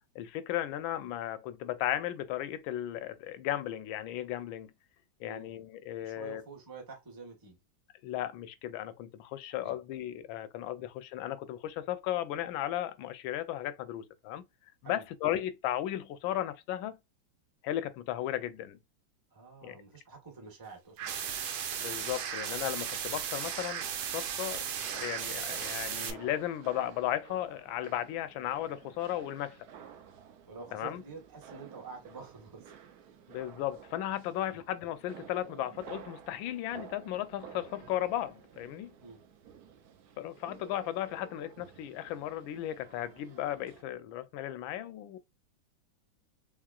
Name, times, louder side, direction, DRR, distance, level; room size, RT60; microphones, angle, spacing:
voice 1, 0.1-4.7 5.2-6.4 8.0-14.4 14.8-17.0 17.6-18.8 19.6-19.8 21.8-23.9 24.1-24.7 24.9-29.7 30.7-31.0 33.3-38.9 40.2-45.2, left 12 dB, 80° left, 1.3 m, -35 dB
voice 2, 6.0-7.6 9.6-9.7 10.8-10.9 14.8-15.0 19.3-21.4 30.5-33.2 34.5-34.6 39.0-39.2, right 4 dB, 15° right, 0.8 m, -48 dB
sound 1, 21.0-26.1, right 8 dB, 85° right, 1.5 m, -36 dB
sound 2, 24.5-43.8, right 8 dB, 70° right, 0.9 m, -53 dB
3.6 x 3.3 x 2.3 m
omnidirectional pair, 2.2 m